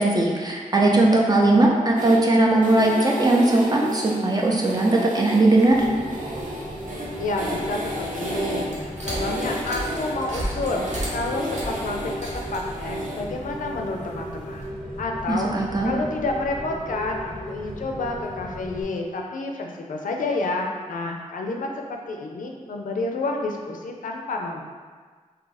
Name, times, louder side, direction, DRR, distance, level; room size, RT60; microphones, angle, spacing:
voice 1, 0.0-5.8 15.3-15.9, right 2 dB, 30° right, -2 dB, 0.6 m, -19 dB
sound 1, 2.0-13.2, equal, 80° right, 0.7 m, -33 dB
Rain, 5.7-18.8, equal, 5° left, 0.7 m, -36 dB
sound 2, 7.0-14.6, equal, 60° right, 1.0 m, -36 dB
voice 2, 7.2-14.6 15.0-24.6, left 2 dB, 85° left, 1 dB, 0.4 m, -29 dB
2.7 x 2.4 x 3.9 m, 1.5 s
cardioid pair, 65°, 13 cm